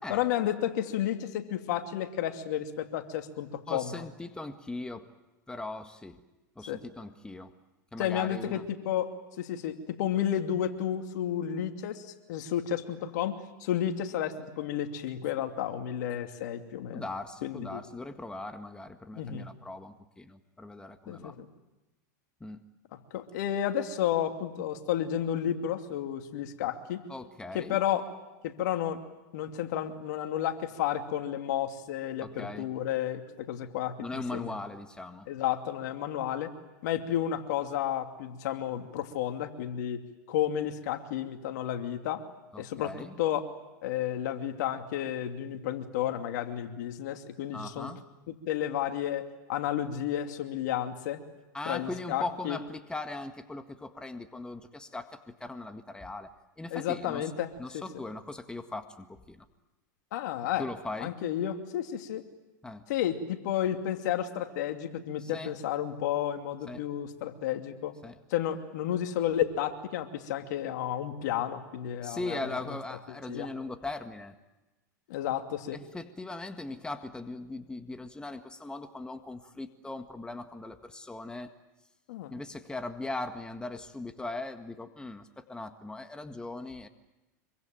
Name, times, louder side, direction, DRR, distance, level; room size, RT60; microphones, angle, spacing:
voice 1, 0.1-4.0 6.6-6.8 8.0-9.1 9.4-17.0 17.4-17.8 19.2-19.5 21.1-21.5 23.1-27.0 27.5-28.0 28.4-29.0 29.3-34.5 35.3-36.5 36.8-40.0 40.3-42.2 42.6-43.5 43.8-47.9 48.5-51.2 51.6-52.6 56.7-58.0 60.1-60.7 61.0-62.2 62.9-67.9 68.3-72.4 73.3-73.5 75.1-75.8 82.1-82.3, left 10 dB, 70° left, 6 dB, 2.7 m, -32 dB
voice 2, 3.7-5.1 5.5-6.2 6.6-7.5 7.9-8.6 16.9-21.3 22.4-22.6 27.1-27.8 32.2-32.7 34.0-35.3 42.5-43.1 47.5-48.0 51.5-56.3 56.6-57.3 57.6-59.5 60.6-61.1 62.6-62.8 65.2-65.5 66.7-66.8 68.0-68.2 72.0-74.3 75.7-81.5 82.3-86.9, left 2 dB, 10° left, 7 dB, 1.7 m, -39 dB
25.5 x 24.0 x 9.1 m, 1.0 s
hypercardioid pair, 105°, 10 cm